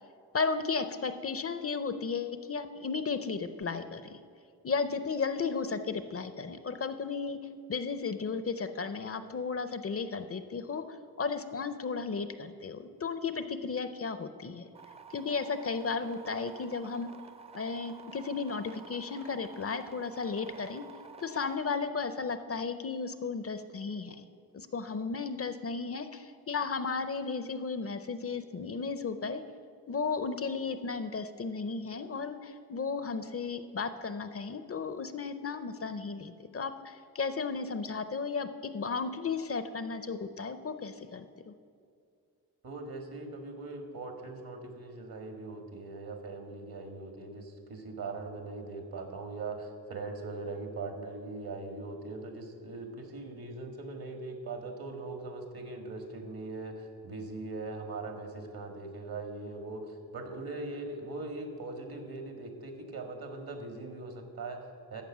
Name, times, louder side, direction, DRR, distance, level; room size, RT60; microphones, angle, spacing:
voice 1, 0.3-4.2 4.6-7.4 7.7-14.6 15.1-17.1 17.5-20.8 21.2-24.2 24.5-29.4 29.9-41.5, left 5 dB, 40° left, 11 dB, 0.5 m, -34 dB
sound 1, 14.7-21.6, right 5 dB, 15° right, 0.5 m, -50 dB
voice 2, 42.6-65.0, right 3 dB, 70° right, 4 dB, 1.7 m, -41 dB
13.5 x 5.2 x 7.3 m, 2.4 s
wide cardioid pair, 115°, 37 cm